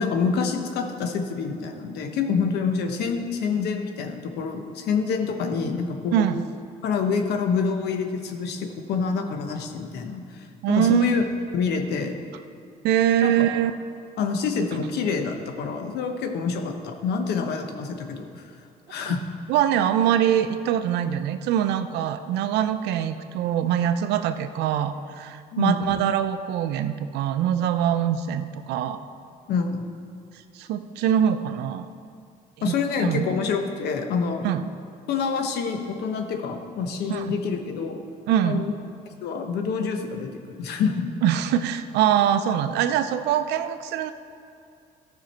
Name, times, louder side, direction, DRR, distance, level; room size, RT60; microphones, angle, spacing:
voice 1, 0.0-6.2 6.8-11.2 11.5-12.1 13.2-13.5 14.2-18.3 18.9-19.2 25.5-25.8 29.5-29.8 32.6-34.5 35.1-38.0 38.4-38.7 39.2-41.1, left 5 dB, 75° left, 5 dB, 1.1 m, -27 dB
voice 2, 6.1-6.4 10.6-11.2 12.8-13.8 14.7-14.8 19.1-19.2 19.5-29.0 30.6-31.9 32.6-33.3 34.4-34.7 37.1-37.3 38.3-38.6 41.2-44.1, right 10 dB, 85° right, 10 dB, 0.6 m, -23 dB
14.5 x 6.2 x 4.4 m, 2.4 s
cardioid pair, 110°, 17 cm